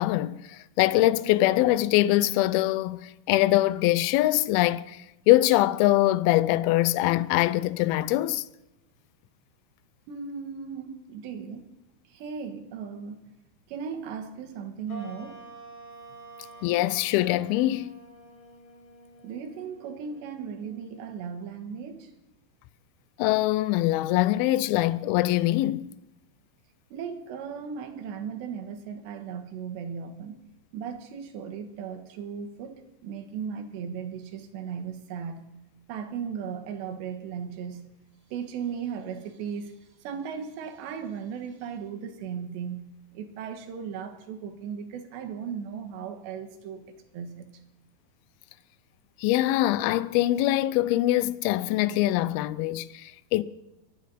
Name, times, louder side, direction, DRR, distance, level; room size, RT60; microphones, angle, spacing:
voice 1, 0.0-8.4 16.6-17.9 23.2-25.8 49.2-53.4, left 16 dB, 80° left, 2.3 m, -23 dB
voice 2, 10.1-11.7 12.1-13.2 13.7-15.4 19.2-22.1 26.9-30.4 30.7-35.6 35.9-37.9 38.3-39.7 40.0-46.9 47.1-47.5, right 7 dB, 90° right, 3.7 m, -37 dB
sound 1, 14.9-21.6, right 2 dB, 40° left, 5.9 m, -49 dB
25.0 x 10.5 x 4.1 m
omnidirectional pair, 4.9 m